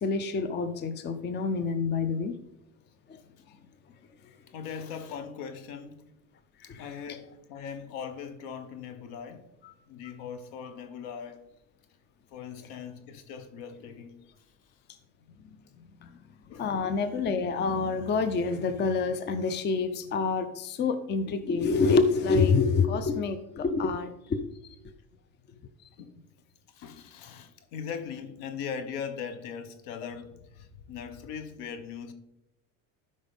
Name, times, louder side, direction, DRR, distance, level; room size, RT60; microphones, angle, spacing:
voice 1, 0.0-2.4 3.1-3.2 6.7-6.8 16.0-16.2 16.6-24.4, left 4 dB, 25° left, 0.6 m, -27 dB
voice 2, 4.5-6.1 6.6-9.5 9.9-11.4 12.3-14.1 16.5-16.7 26.0-26.3 26.7-32.1, left 7 dB, 70° left, 1.1 m, -40 dB
12.5 x 5.3 x 3.5 m
supercardioid pair, 110°, 42 cm